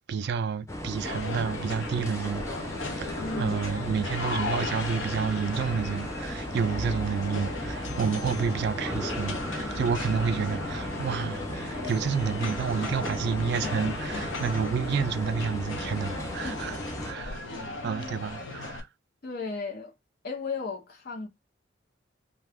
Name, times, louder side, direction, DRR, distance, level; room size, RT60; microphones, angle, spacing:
voice 1, 0.1-2.5 3.0-18.9, right 6 dB, 60° right, 0.4 m, -30 dB
sound 1, 0.7-17.1, left 1 dB, 15° left, 0.6 m, -36 dB
sound 2, 1.0-18.8, left 3 dB, 85° left, 0.9 m, -36 dB
voice 2, 3.2-3.8 16.4-16.6 17.5-18.2 19.2-19.9 20.2-21.3, left 4 dB, 55° left, 0.7 m, -36 dB
2.7 x 2.3 x 3.4 m
head